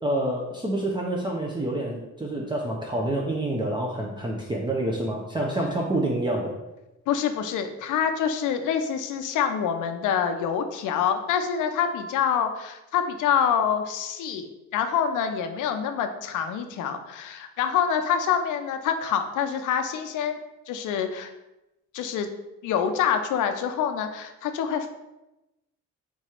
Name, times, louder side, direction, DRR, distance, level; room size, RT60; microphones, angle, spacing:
voice 1, 0.0-6.5, right 1 dB, 15° right, -3 dB, 0.6 m, -27 dB
voice 2, 7.1-20.4 20.7-21.3 21.9-22.3 22.6-24.9, left 8 dB, 85° left, 7 dB, 0.6 m, -26 dB
3.6 x 3.1 x 4.3 m, 0.96 s
cardioid pair, 90°, 30 cm